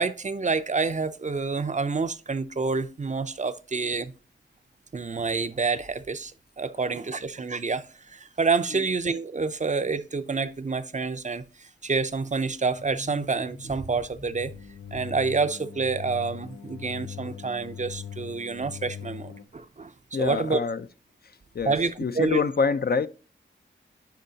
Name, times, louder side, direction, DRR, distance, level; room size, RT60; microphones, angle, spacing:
voice 1, 0.0-4.1 4.9-14.5 14.9-19.9 20.2-20.6 21.7-22.4, right 4 dB, 35° right, 0.5 m, -28 dB
sound 1, 12.7-19.4, left 8 dB, 85° left, 0.7 m, -41 dB
voice 2, 20.1-20.9 21.5-23.1, left 5 dB, 50° left, 0.4 m, -26 dB
10.5 x 4.5 x 2.7 m
wide cardioid pair, 65°, 21 cm